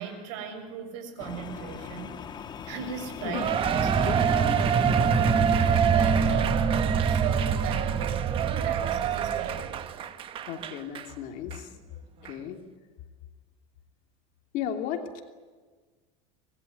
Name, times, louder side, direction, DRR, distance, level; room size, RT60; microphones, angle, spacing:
voice 1, 0.0-2.2 2.7-3.5 3.8-4.0 4.3-5.0 5.3-10.1, right 7 dB, 70° right, 5 dB, 7.0 m, -38 dB
sound 1, 1.2-6.4, left 7 dB, 25° left, 1.4 m, -41 dB
voice 2, 2.9-3.4 4.0-5.0 10.4-11.7 12.2-12.6 14.5-15.2, left 9 dB, 50° left, 5 dB, 2.9 m, -35 dB
Cheering, 3.3-11.1 11.5-11.6 12.2-12.3, right 9 dB, 30° right, 1.3 m, -28 dB
sound 2, 3.5-9.9, right 5 dB, 15° right, 1.0 m, -26 dB
25.0 x 20.5 x 9.5 m, 1.4 s
supercardioid pair, 145°, 17 cm